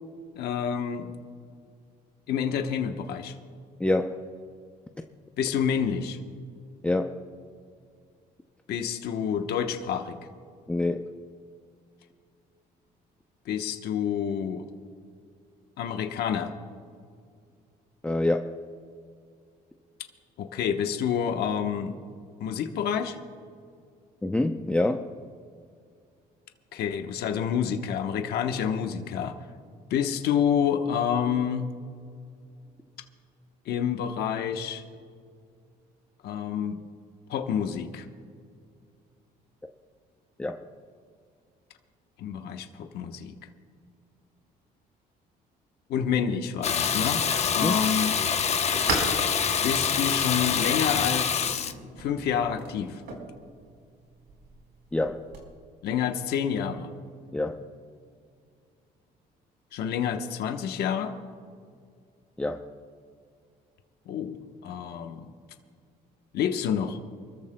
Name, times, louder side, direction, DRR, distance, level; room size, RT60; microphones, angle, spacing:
voice 1, 0.4-1.1 2.3-3.3 5.4-6.2 8.7-10.2 13.5-14.6 15.8-16.5 20.4-22.0 22.4-23.2 26.7-29.3 29.9-31.7 33.7-34.8 36.2-36.8 37.3-38.0 42.2-43.3 45.9-47.3 47.5-48.2 49.6-51.7 52.0-53.0 55.8-56.9 59.7-61.1 64.1-64.4 64.6-65.3 66.3-67.0, left 8 dB, 70° left, 5 dB, 1.1 m, -28 dB
voice 2, 3.8-4.2 6.8-7.2 10.7-11.0 18.0-18.6 24.2-25.1 40.4-40.6 47.6-47.8 54.9-55.2 57.3-57.6 62.4-62.6, left 2 dB, 5° left, 5 dB, 0.6 m, -26 dB
sound 1, 46.5-55.5, right 3 dB, 80° right, 4.4 m, -39 dB
Water tap faucet / Bathtub (filling or washing), 46.6-51.7, left 7 dB, 40° left, 0.9 m, -26 dB
28.5 x 14.0 x 2.2 m, 2.3 s
cardioid pair, 110°, 17 cm